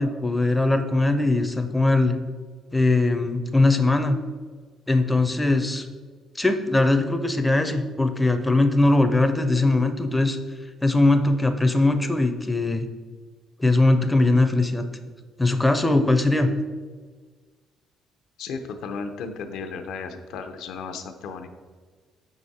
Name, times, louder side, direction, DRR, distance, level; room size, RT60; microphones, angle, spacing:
voice 1, 0.0-2.2 2.7-4.2 4.9-5.9 6.4-10.4 10.8-12.9 13.6-14.8 15.4-16.5, left 2 dB, 10° left, 7 dB, 0.4 m, -20 dB
voice 2, 18.4-21.5, left 5 dB, 80° left, 7 dB, 0.6 m, -34 dB
5.2 x 4.9 x 4.0 m, 1.5 s
cardioid pair, 135°, 0 cm